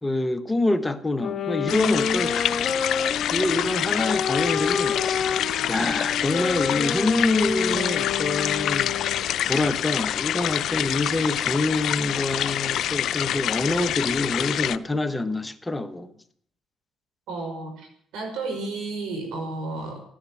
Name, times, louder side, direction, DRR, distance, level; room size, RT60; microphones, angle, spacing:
voice 1, 0.0-2.5 3.3-5.2 5.7-8.9 9.5-16.1, left 2 dB, 15° left, 1.2 m, -26 dB
sound 1, 1.2-9.4, left 6 dB, 50° left, 1.6 m, -29 dB
sound 2, 1.7-14.8, left 11 dB, 75° left, 0.5 m, -27 dB
voice 2, 17.3-20.0, right 3 dB, 90° right, 5.1 m, -32 dB
14.0 x 9.9 x 8.5 m
cardioid pair, 90°, 0 cm